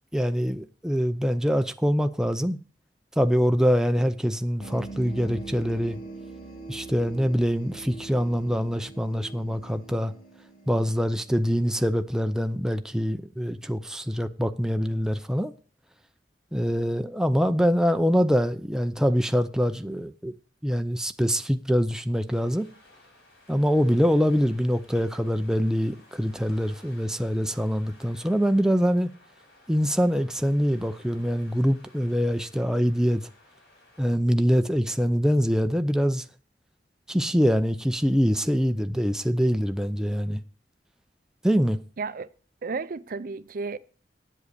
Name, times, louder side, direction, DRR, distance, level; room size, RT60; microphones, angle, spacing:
voice 1, 0.1-2.6 3.2-6.0 6.7-10.1 10.7-15.5 16.5-20.3 20.6-22.7 23.5-29.1 29.7-33.2 34.0-36.2 37.1-40.4 41.4-41.8, equal, 5° right, 0.6 m, -24 dB
sound 1, 4.6-12.0, right 3 dB, 50° left, 1.7 m, -42 dB
sound 2, 22.3-34.1, left 2 dB, 75° left, 5.7 m, -56 dB
voice 2, 42.0-42.3 42.6-43.8, right 4 dB, 55° right, 0.5 m, -32 dB
9.7 x 7.8 x 6.7 m
head